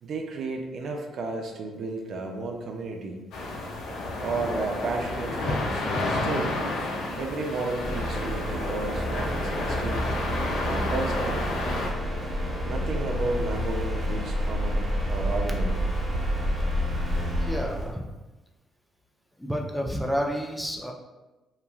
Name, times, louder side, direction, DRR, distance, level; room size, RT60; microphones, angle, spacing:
voice 1, 0.0-3.2 4.2-6.6 7.1-10.1 10.6-11.6 12.6-15.8, right 3 dB, 65° right, 2 dB, 0.4 m, -33 dB
sound 1, 3.3-11.9, left 2 dB, 85° left, 0.4 m, -31 dB
sound 2, 7.8-17.9, equal, 25° right, 1.2 m, -29 dB
voice 2, 17.4-18.1 19.4-20.9, equal, 5° left, 0 dB, 0.4 m, -30 dB
2.9 x 2.3 x 2.4 m, 1.1 s
cardioid pair, 90°, 0 cm